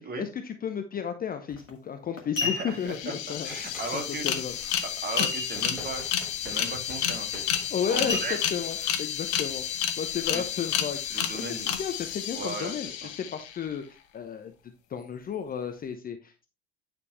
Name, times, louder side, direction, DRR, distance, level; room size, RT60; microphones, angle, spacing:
voice 1, 0.0-3.6 3.9-4.5 5.2-5.3 7.7-8.2 8.5-9.6 10.0-11.0 11.3-11.5 11.8-16.5, left 7 dB, 25° left, 8 dB, 0.8 m, -33 dB
sound 1, 1.5-1.7 2.2-3.0 5.2-5.8 6.2-6.3 6.7-7.0 8.1-8.9 9.4-9.5, left 4 dB, 85° left, 1.4 m, -32 dB
voice 2, 2.4-3.1 3.4-4.4 5.0-8.4 10.3-10.4 11.1-11.8 12.3-12.8 13.0-13.1, right 3 dB, 25° right, 4 dB, 2.2 m, -37 dB
sound 2, 2.6-2.7 2.8-13.6, left 10 dB, 55° left, 1.2 m, -31 dB
Domestic sounds home sounds, 3.3-4.0 4.3-4.9 5.5-7.8 8.7-8.9, equal, ahead, 5.2 m, -48 dB
9.5 x 5.3 x 3.2 m, 0.28 s
figure-of-eight pair, 70°, 38 cm